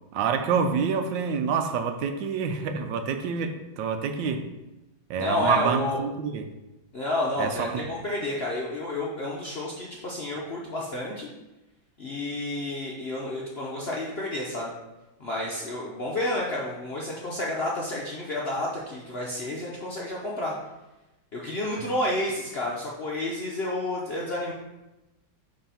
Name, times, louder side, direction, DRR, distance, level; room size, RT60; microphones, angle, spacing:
voice 1, 0.1-4.5 5.1-6.5 7.4-7.9 21.8-21.9, right 6 dB, 80° right, 7 dB, 1.3 m, -27 dB
voice 2, 5.2-6.0 6.9-11.3 12.0-14.7 15.2-20.5 21.3-24.5, left 1 dB, 65° left, -4 dB, 0.6 m, -30 dB
5.6 x 3.4 x 5.5 m, 1.0 s
omnidirectional pair, 2.1 m